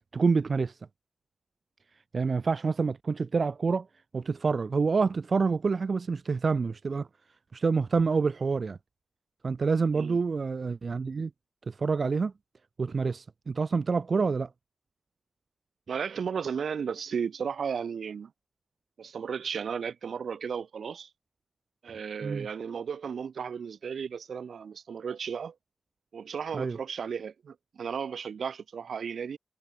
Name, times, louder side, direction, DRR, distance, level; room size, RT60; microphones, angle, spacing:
voice 1, 0.1-0.8 2.1-3.9 4.1-7.1 7.5-8.8 9.4-11.3 11.7-12.3 12.8-14.5 22.2-22.5 26.5-26.8, right 4 dB, 65° right, 3.6 m, -27 dB
voice 2, 15.9-18.3 19.0-21.1 21.8-25.5 26.1-29.4, right 6 dB, 80° right, 6.1 m, -34 dB
cardioid pair, 40°, 0 cm